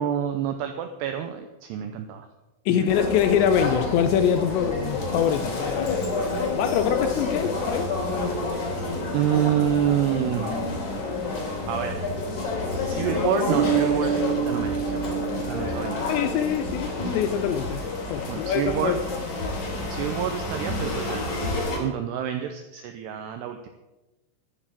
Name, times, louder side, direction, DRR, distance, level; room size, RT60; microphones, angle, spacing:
voice 1, 0.0-2.3 2.7-2.9 9.1-10.8 11.1-11.3 11.7-12.2 12.6-16.2 18.3-19.0 19.8-23.7, right 10 dB, 85° right, 7 dB, 2.4 m, -28 dB
voice 2, 2.7-6.2 6.5-8.4 16.1-19.0, left 8 dB, 80° left, 9 dB, 2.6 m, -25 dB
sound 1, 2.9-21.8, left 3 dB, 45° left, 3.9 m, -29 dB
sound 2, 13.5-16.8, right 9 dB, 60° right, 1.3 m, -28 dB
12.5 x 9.8 x 7.5 m, 1.0 s
omnidirectional pair, 5.8 m